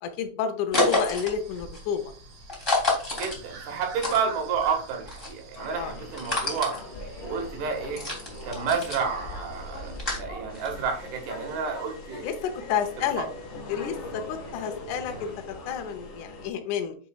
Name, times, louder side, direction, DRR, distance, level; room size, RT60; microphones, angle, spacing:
voice 1, 0.0-2.1 5.7-5.9 12.2-13.3 13.7-17.0, left 8 dB, 75° left, 5 dB, 1.8 m, -30 dB
sound 1, 0.7-4.7 5.0-11.0, left 2 dB, 10° left, 2.2 m, -30 dB
sound 2, 1.3-10.0, right 6 dB, 55° right, 3.2 m, -50 dB
voice 2, 3.2-6.7 7.2-8.1 8.4-12.3 13.0-13.3, right 6 dB, 90° right, 2 dB, 3.8 m, -30 dB
sound 3, 5.5-16.5, left 2 dB, 50° left, 2.1 m, -42 dB
7.4 x 6.1 x 2.4 m, 0.42 s
omnidirectional pair, 4.5 m